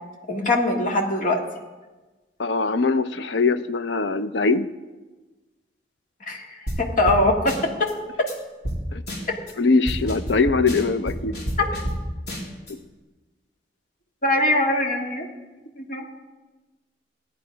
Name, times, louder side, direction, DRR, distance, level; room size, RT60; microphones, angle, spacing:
voice 1, 0.3-1.4 6.3-6.4 6.8-7.9 11.6-11.7 14.2-15.3 15.8-16.0, left 2 dB, 50° left, 0 dB, 1.9 m, -22 dB
voice 2, 2.4-4.7 8.9-9.0 9.6-11.3 12.7-12.8, left 4 dB, 85° left, 12 dB, 0.6 m, -22 dB
sound 1, 6.7-6.8 7.1-7.2 7.5-7.9 8.3-8.4 8.6-8.8 9.1-9.5 9.9-12.0 12.3-12.7, equal, 65° left, 3.1 m, -29 dB
16.0 x 9.7 x 5.2 m, 1.2 s
head